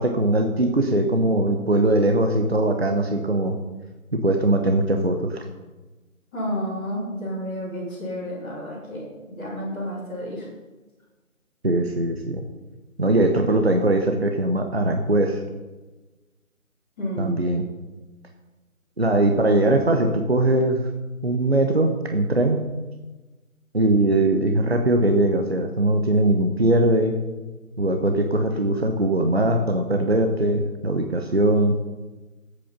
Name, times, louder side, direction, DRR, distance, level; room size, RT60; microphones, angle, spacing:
voice 1, 0.0-3.6 4.1-5.4 11.6-12.4 13.0-15.4 17.2-17.7 19.0-20.9 21.2-22.6 23.7-27.2 27.8-31.8, right 1 dB, 45° right, 4 dB, 1.1 m, -21 dB
voice 2, 6.3-9.0 9.4-10.5 17.0-17.4, equal, 5° left, -13 dB, 2.8 m, -30 dB
13.0 x 8.5 x 5.3 m, 1.2 s
figure-of-eight pair, 165°, 42 cm